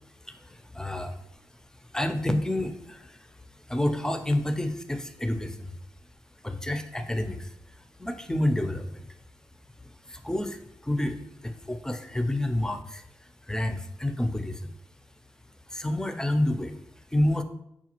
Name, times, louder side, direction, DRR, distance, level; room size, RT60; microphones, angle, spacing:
voice 1, 0.2-1.4 1.7-5.8 6.4-9.2 10.0-14.7 15.7-17.4, left 1 dB, 10° left, 7 dB, 0.5 m, -30 dB
5.8 x 2.3 x 2.9 m, 0.80 s
cardioid pair, 45°, 7 cm